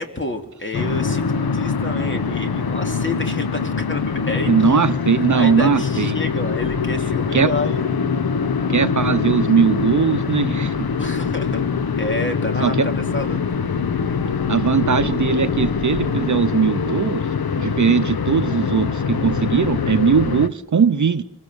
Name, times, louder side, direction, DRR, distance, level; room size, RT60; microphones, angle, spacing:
voice 1, 0.0-4.9 5.3-8.0 11.0-13.4, left 2 dB, 35° left, 2.7 m, -29 dB
sound 1, 0.7-20.5, left 6 dB, 85° left, 1.0 m, -23 dB
voice 2, 4.5-6.2 7.3-7.5 8.7-10.9 12.6-12.9 14.5-17.2 17.6-21.2, right 6 dB, 55° right, 0.8 m, -19 dB
sound 2, 6.6-7.6 10.3-16.6 19.0-20.3, right 1 dB, 20° right, 5.8 m, -36 dB
24.5 x 24.0 x 6.9 m
wide cardioid pair, 85°, 36 cm